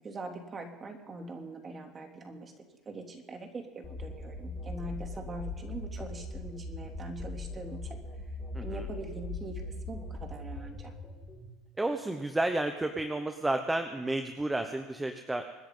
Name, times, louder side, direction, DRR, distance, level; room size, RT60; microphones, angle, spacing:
voice 1, 0.0-2.5 2.9-8.0 8.6-10.9, right 2 dB, 25° right, 3 dB, 2.9 m, -42 dB
sound 1, 3.8-11.5, left 2 dB, 25° left, 5.1 m, -40 dB
voice 2, 8.5-8.9 11.8-15.5, right 2 dB, 10° right, 7 dB, 1.1 m, -31 dB
25.5 x 10.5 x 3.9 m, 1.3 s
supercardioid pair, 105°, 0 cm